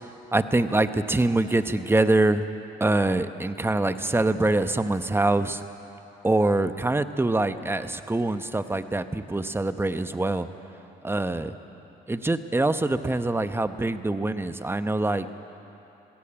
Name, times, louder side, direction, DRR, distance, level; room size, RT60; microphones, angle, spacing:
voice 1, 0.0-2.5 2.8-5.6 6.2-10.5 11.0-11.5 12.1-15.3, right 2 dB, 10° right, 10 dB, 0.9 m, -24 dB
20.5 x 16.5 x 8.7 m, 3.0 s
cardioid pair, 90°, 20 cm